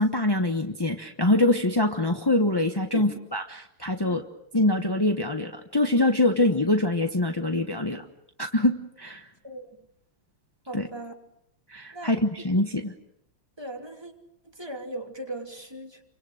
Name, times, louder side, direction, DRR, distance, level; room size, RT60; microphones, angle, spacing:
voice 1, 0.0-4.2 4.5-8.0 8.4-9.3 10.7-10.9 11.7-12.9, left 1 dB, 20° left, 4 dB, 0.7 m, -24 dB
voice 2, 10.7-11.1 11.9-12.2 13.6-14.1 14.5-16.0, right 1 dB, 10° right, 2 dB, 2.7 m, -37 dB
29.5 x 25.0 x 6.5 m, 0.72 s
omnidirectional pair, 2.4 m